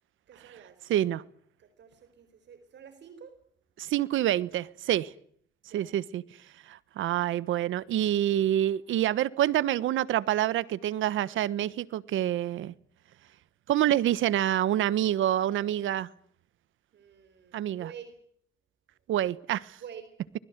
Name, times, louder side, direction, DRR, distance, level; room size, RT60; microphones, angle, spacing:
voice 1, 0.3-0.8 1.6-3.4 5.7-5.9 16.9-18.1 19.8-20.1, right 7 dB, 65° right, 4.6 m, -48 dB
voice 2, 0.9-1.2 3.8-5.1 5.7-6.2 6.7-12.7 13.7-16.1 17.5-17.9 19.1-19.8, right 12 dB, 80° right, 1.2 m, -27 dB
24.5 x 21.0 x 8.2 m
cardioid pair, 90°, 20 cm